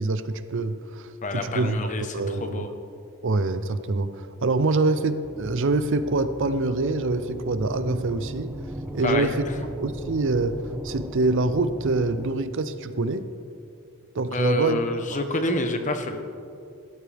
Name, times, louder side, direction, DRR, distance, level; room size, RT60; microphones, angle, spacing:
voice 1, 0.0-2.7 3.2-8.5 8.9-13.3 14.1-14.8 15.1-15.2, right 3 dB, 55° right, 12 dB, 0.6 m, -25 dB
voice 2, 1.2-2.7 9.0-9.3 14.3-16.2, left 1 dB, 35° left, 6 dB, 1.0 m, -27 dB
sound 1, 5.2-12.3, equal, 5° right, 0.6 m, -36 dB
16.0 x 12.5 x 3.5 m, 2.6 s
head